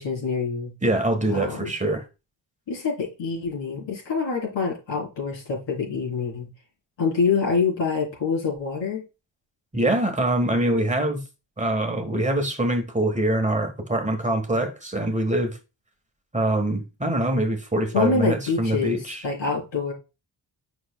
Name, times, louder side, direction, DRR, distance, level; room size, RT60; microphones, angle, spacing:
voice 1, 0.0-0.7 1.3-1.7 2.7-6.5 7.0-9.0 17.9-19.0 19.2-19.9, left 5 dB, 85° left, 3.9 m, -26 dB
voice 2, 0.8-2.1 9.7-11.2 11.6-15.6 16.3-19.2, right 1 dB, 15° right, 1.4 m, -24 dB
7.8 x 6.0 x 2.3 m
wide cardioid pair, 110°, 43 cm